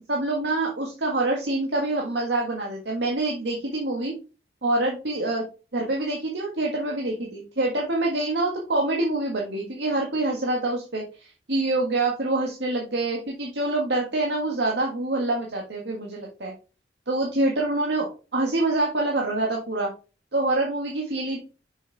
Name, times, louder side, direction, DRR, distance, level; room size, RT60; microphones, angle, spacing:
voice 1, 0.1-4.1 4.6-5.4 5.7-16.5 17.1-19.9 20.3-21.4, right 2 dB, 80° right, -1 dB, 1.6 m, -26 dB
6.4 x 6.4 x 3.4 m, 0.33 s
head